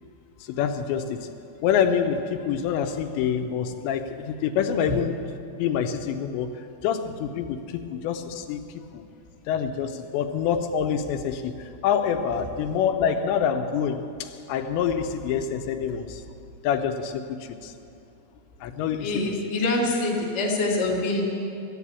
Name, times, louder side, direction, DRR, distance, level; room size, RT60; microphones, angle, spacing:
voice 1, 0.5-1.3 1.6-5.2 5.6-9.0 9.5-16.2 16.6-17.7 18.6-19.1, left 7 dB, 85° left, 7 dB, 2.9 m, -26 dB
voice 2, 19.0-21.2, left 2 dB, 40° left, -4 dB, 0.9 m, -25 dB
12.5 x 11.0 x 8.4 m, 2.6 s
omnidirectional pair, 5.1 m